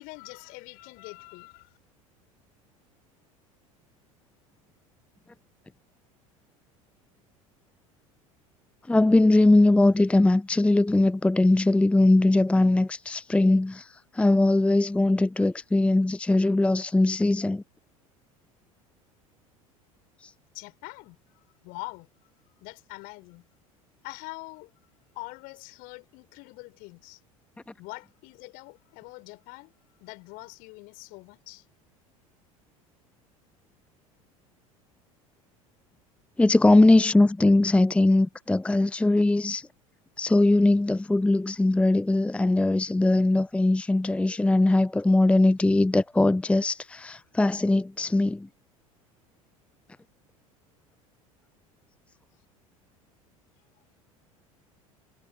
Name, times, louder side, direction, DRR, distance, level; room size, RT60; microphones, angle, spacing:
voice 1, 0.0-1.8 20.5-22.1 22.6-23.4 24.0-24.7 25.2-27.2 27.8-29.7 30.0-31.7, left 26 dB, 55° left, 7.1 m, -44 dB
voice 2, 8.9-17.6 20.2-20.3 36.4-39.7 40.2-48.5, left 2 dB, 5° left, 0.8 m, -21 dB
figure-of-eight pair, 70°, 18 cm